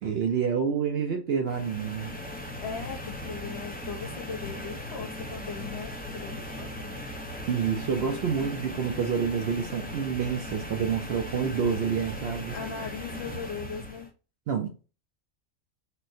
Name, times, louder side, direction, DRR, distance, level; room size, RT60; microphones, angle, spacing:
voice 1, 0.0-2.1 7.5-12.6 14.5-14.8, right 6 dB, 65° right, 0.6 m, -28 dB
sound 1, 1.5-14.1, left 1 dB, 15° left, 0.3 m, -38 dB
voice 2, 2.6-7.0 12.5-14.1, left 6 dB, 60° left, 0.9 m, -39 dB
4.3 x 2.1 x 2.5 m
omnidirectional pair, 1.4 m